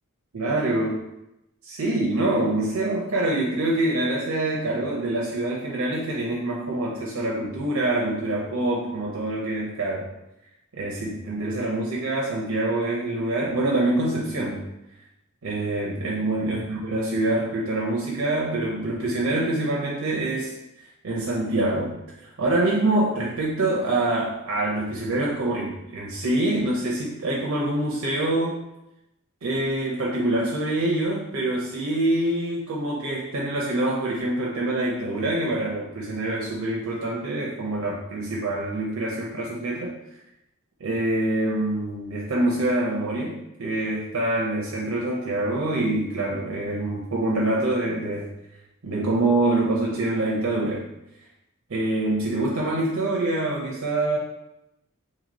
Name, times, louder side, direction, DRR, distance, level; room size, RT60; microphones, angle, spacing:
voice 1, 0.3-1.0 1.6-10.1 10.7-14.7 15.4-28.6 29.4-40.0 40.8-48.3 48.8-50.9 51.7-54.2, right 2 dB, 75° right, -4 dB, 0.6 m, -25 dB
3.0 x 2.8 x 4.0 m, 0.89 s
head